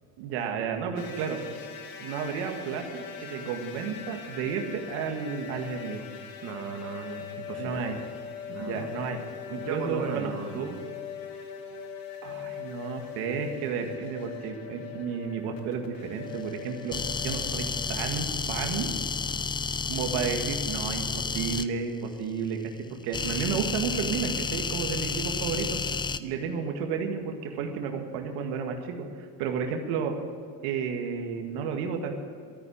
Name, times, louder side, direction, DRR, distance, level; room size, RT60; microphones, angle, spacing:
voice 1, 0.2-1.4 2.0-6.0 7.6-8.0 8.6-9.2 9.5-10.3 12.2-18.9 19.9-22.7 23.0-25.8 26.2-30.1 30.6-32.2, right 6 dB, 75° right, 3 dB, 2.0 m, -32 dB
sound 1, 1.0-18.0, left 8 dB, 60° left, 2.2 m, -41 dB
voice 2, 6.4-7.8 8.5-9.1 9.6-10.8, right 5 dB, 40° right, 3 dB, 1.9 m, -36 dB
sound 2, 16.9-21.7 23.1-26.2, left 5 dB, 15° left, 0.4 m, -31 dB
14.0 x 9.1 x 8.8 m, 2.3 s
supercardioid pair, 120°, 39 cm